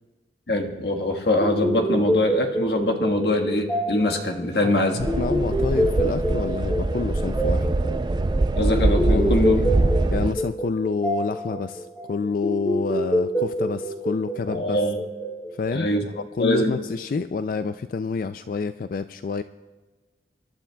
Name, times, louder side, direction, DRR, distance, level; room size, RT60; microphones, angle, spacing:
voice 1, 0.5-5.1 8.6-9.6 14.5-15.0 15.7-16.0 16.4-16.8, left 1 dB, 65° left, 4 dB, 1.5 m, -23 dB
sound 1, 1.4-16.2, right 1 dB, 10° left, 2.6 m, -27 dB
voice 2, 5.0-7.8 9.1-9.3 10.1-14.8 15.5-19.4, left 4 dB, 50° left, 11 dB, 0.3 m, -28 dB
sound 2, 5.0-10.3, right 2 dB, 25° right, 0.4 m, -23 dB
27.0 x 11.5 x 2.3 m, 1.3 s
head